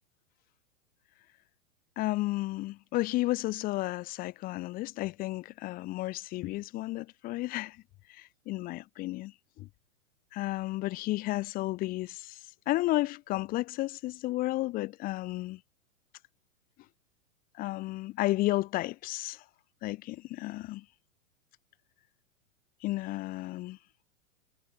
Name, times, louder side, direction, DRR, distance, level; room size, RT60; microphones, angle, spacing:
voice 1, 2.0-7.8 8.1-9.3 9.6-9.7 10.3-12.4 12.7-15.6 17.6-19.4 19.8-20.8 22.8-23.8, left 18 dB, 20° left, 0.5 m, -32 dB
hypercardioid pair, 110°, 41 cm